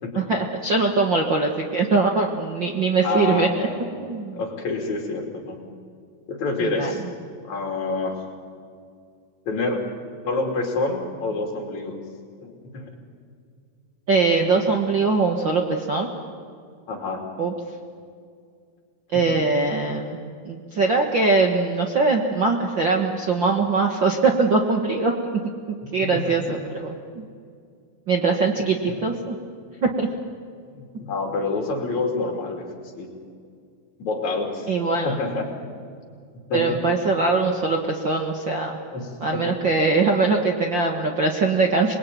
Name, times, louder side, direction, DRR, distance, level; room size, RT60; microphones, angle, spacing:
voice 1, 0.1-3.5 4.0-4.4 6.6-6.9 14.1-16.1 17.4-17.5 19.1-20.2 20.4-25.4 25.7-27.2 28.1-29.4 29.8-30.1 34.7-35.2 36.5-38.8 39.2-42.0, right 3 dB, 55° right, 2 dB, 1.3 m, -22 dB
voice 2, 3.0-3.8 4.3-5.6 6.3-7.0 7.4-8.2 9.5-9.8 10.2-12.0 12.4-13.0 16.9-17.2 19.1-19.4 25.8-26.3 28.3-28.5 28.9-29.0 30.7-33.1 34.0-35.5 36.5-36.8 38.9-39.6, left 3 dB, 50° left, 2 dB, 3.9 m, -28 dB
26.5 x 20.5 x 9.3 m, 2.3 s
omnidirectional pair, 4.3 m